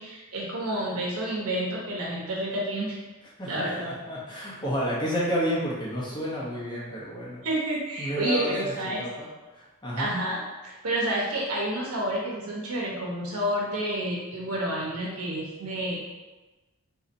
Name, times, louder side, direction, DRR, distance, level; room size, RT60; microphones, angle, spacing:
voice 1, 0.0-3.0 3.5-3.8 7.4-9.1 10.0-16.0, right 1 dB, 80° right, -3 dB, 0.9 m, -29 dB
voice 2, 3.4-7.4 8.0-8.7 9.0-10.1, equal, 20° left, -6 dB, 0.8 m, -31 dB
4.1 x 2.8 x 2.6 m, 1.2 s
head